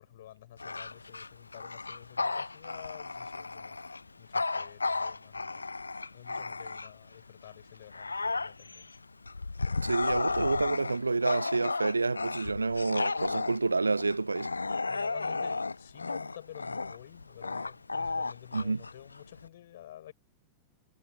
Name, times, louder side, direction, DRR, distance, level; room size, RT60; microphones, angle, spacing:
voice 1, 0.0-5.6 6.1-9.0 9.6-10.2 14.9-20.1, left 12 dB, 60° left, 7.0 m, -50 dB
Bark / Growling, 0.6-7.1 7.6-19.5, left 3 dB, 80° left, 0.7 m, -34 dB
voice 2, 9.8-14.5 18.5-18.8, right 3 dB, 80° right, 0.5 m, -29 dB
figure-of-eight pair, 90°, 0 cm